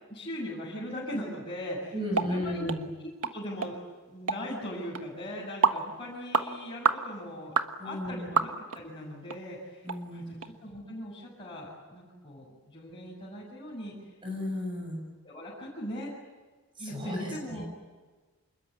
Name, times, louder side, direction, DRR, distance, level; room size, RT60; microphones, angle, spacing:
voice 1, 0.1-3.8 4.1-7.6 7.8-13.9 15.2-16.1 16.8-17.6, equal, 25° left, -6 dB, 7.5 m, -39 dB
voice 2, 1.9-2.9 7.8-8.4 9.8-10.4 14.2-15.0 16.8-17.6, left 1 dB, 20° right, 1 dB, 7.0 m, -34 dB
sound 1, 2.2-2.3 2.7-2.8 3.2-3.4 3.6-3.7 4.3-4.4 5.0-5.1 5.6-5.8 6.3-6.5 6.9-7.0 7.6-7.7 8.4-8.8 9.3-9.4 9.9-10.0 10.4-10.5, right 5 dB, 80° right, 1.5 m, -26 dB
27.5 x 22.0 x 9.7 m, 1.3 s
head